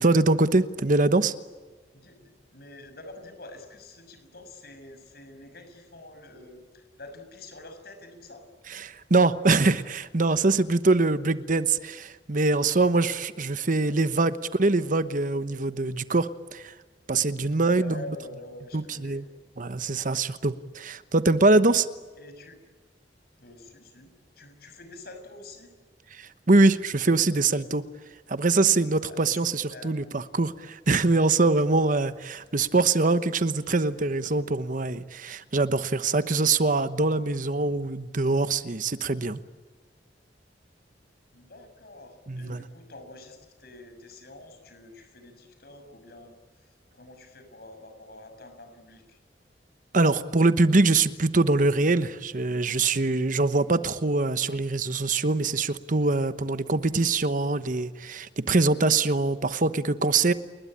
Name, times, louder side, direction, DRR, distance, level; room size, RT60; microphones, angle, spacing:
voice 1, 0.0-1.3 8.7-16.7 17.1-18.0 18.7-19.2 19.6-21.9 26.1-27.8 28.3-39.4 42.3-42.6 49.9-60.3, right 3 dB, 50° right, 13 dB, 1.1 m, -23 dB
voice 2, 1.9-8.4 13.7-14.4 17.6-19.2 22.2-22.6 23.4-25.7 29.1-29.9 32.5-32.7 32.9-33.0 41.3-49.2, left 2 dB, 60° left, 7 dB, 6.5 m, -47 dB
30.0 x 21.0 x 8.8 m, 1.4 s
head